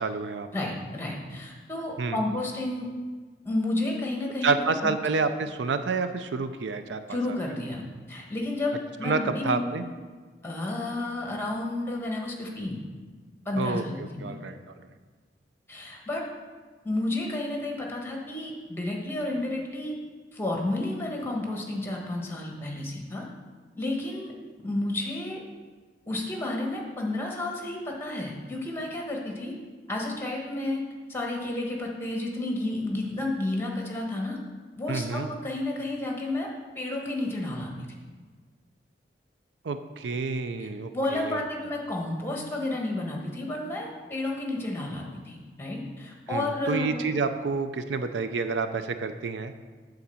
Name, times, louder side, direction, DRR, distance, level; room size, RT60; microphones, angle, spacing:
voice 1, 0.0-0.5 2.0-2.2 4.4-7.4 9.0-9.8 13.6-14.9 34.9-35.3 39.6-41.4 46.3-49.5, right 4 dB, 85° right, 9 dB, 0.5 m, -29 dB
voice 2, 0.5-2.9 3.4-4.9 7.1-7.8 8.1-9.8 10.4-12.8 13.4-14.3 15.7-16.2 16.8-19.9 20.3-23.2 23.8-24.3 24.6-25.4 26.1-29.5 29.9-30.8 31.1-34.4 34.8-36.5 36.7-37.9 40.9-47.1, left 2 dB, 15° left, 0 dB, 1.3 m, -31 dB
8.5 x 3.9 x 6.9 m, 1.4 s
head